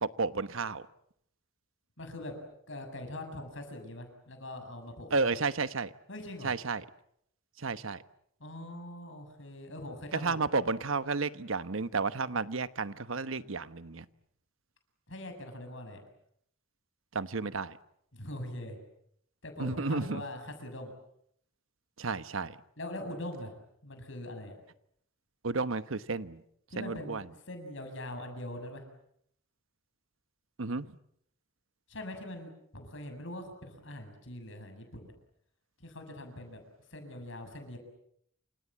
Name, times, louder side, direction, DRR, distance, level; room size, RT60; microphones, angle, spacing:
voice 1, 0.0-0.8 5.1-5.9 6.4-6.8 7.6-8.0 10.2-14.0 17.1-17.8 19.6-20.2 22.0-22.6 25.4-26.4 26.8-27.2 30.6-30.9, right 4 dB, 75° right, 13 dB, 1.1 m, -32 dB
voice 2, 2.0-2.3 2.7-5.3 6.1-6.5 8.4-10.4 15.1-16.0 18.1-18.8 19.4-20.9 22.8-24.5 26.7-27.2 27.5-28.9 31.9-35.1 35.8-36.6 36.9-37.8, left 1 dB, 65° left, 6 dB, 7.3 m, -42 dB
29.0 x 26.5 x 7.5 m, 0.72 s
head